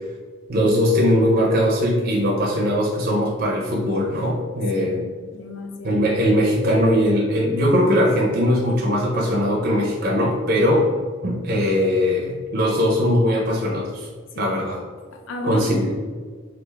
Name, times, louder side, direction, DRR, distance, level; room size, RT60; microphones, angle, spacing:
voice 1, 0.5-5.0 5.8-10.9 11.2-14.1 14.4-14.8 15.4-15.9, equal, 50° right, -3 dB, 0.6 m, -20 dB
voice 2, 4.7-6.0 14.3-14.5 15.1-15.9, left 1 dB, 70° left, 3 dB, 0.5 m, -33 dB
3.4 x 2.4 x 3.3 m, 1.5 s
head